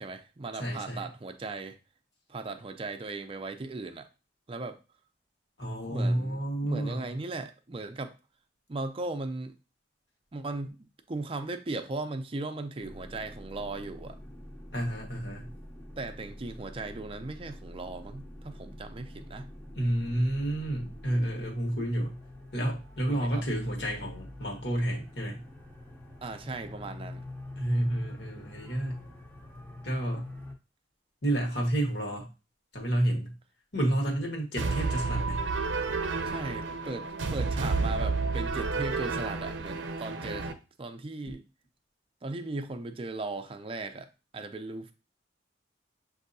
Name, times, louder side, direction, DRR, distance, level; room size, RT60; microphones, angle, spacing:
voice 1, 0.0-1.8 2.3-4.1 4.5-4.8 5.9-8.1 8.7-9.5 10.3-14.2 16.0-19.5 23.1-23.5 26.2-27.2 36.3-41.4 42.2-44.1 44.3-44.9, right 3 dB, 30° right, 7 dB, 0.4 m, -37 dB
voice 2, 0.6-1.1 5.6-7.1 14.7-15.5 19.8-22.1 22.5-25.4 27.6-29.0 29.8-30.2 31.2-32.3 32.7-33.3 33.7-35.4 39.0-39.1, right 1 dB, 65° left, 0 dB, 1.4 m, -30 dB
sound 1, 12.8-30.6, left 1 dB, 10° left, 0.6 m, -45 dB
sound 2, 34.6-40.5, right 4 dB, 90° right, 0.5 m, -31 dB
7.3 x 2.7 x 2.6 m, 0.31 s
head